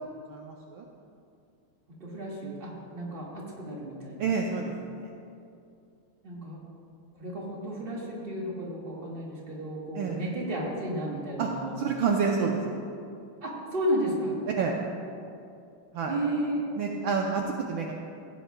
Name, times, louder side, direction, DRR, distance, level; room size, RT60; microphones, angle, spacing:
voice 1, 0.0-0.8 4.2-5.1 9.9-10.2 11.4-11.5 11.8-12.8 14.6-14.7 15.9-16.1 16.8-17.9, right 5 dB, 70° right, 0 dB, 1.3 m, -29 dB
voice 2, 2.0-4.3 6.2-6.6 7.2-11.8 13.4-14.4 16.1-16.6, right 1 dB, 25° right, -4 dB, 1.7 m, -33 dB
16.0 x 9.2 x 2.2 m, 2.6 s
omnidirectional pair, 2.4 m